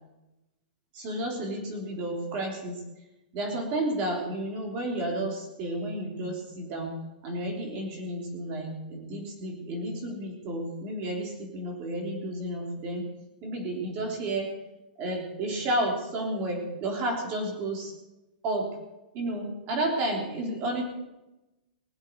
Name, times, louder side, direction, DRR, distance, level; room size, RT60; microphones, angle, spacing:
voice 1, 0.9-2.8 3.3-6.9 7.2-13.1 13.4-14.5 15.0-17.9 18.4-18.7 19.1-20.8, right 1 dB, 30° right, 2 dB, 3.6 m, -31 dB
20.5 x 8.0 x 6.8 m, 0.98 s
supercardioid pair, 170°, 5 cm